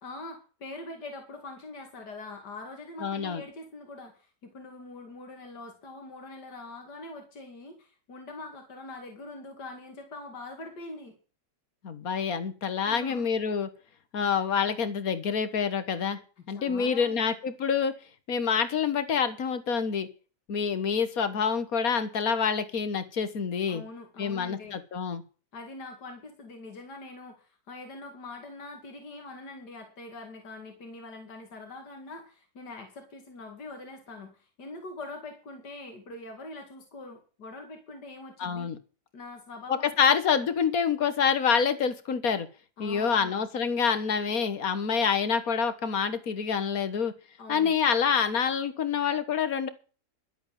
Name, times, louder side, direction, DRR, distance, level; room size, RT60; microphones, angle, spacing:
voice 1, 0.0-11.2 12.8-13.3 16.4-17.4 23.7-24.8 25.5-38.7 39.1-40.2 42.8-43.5 47.4-47.7, left 2 dB, 80° left, 4 dB, 2.9 m, -43 dB
voice 2, 3.0-3.4 11.8-13.7 14.1-16.2 16.5-17.9 18.3-20.1 20.5-23.8 24.2-25.2 38.4-38.8 39.7-42.5 42.8-47.1 47.5-49.7, left 6 dB, 60° left, 12 dB, 1.8 m, -27 dB
12.0 x 8.1 x 7.6 m, 0.37 s
omnidirectional pair, 1.8 m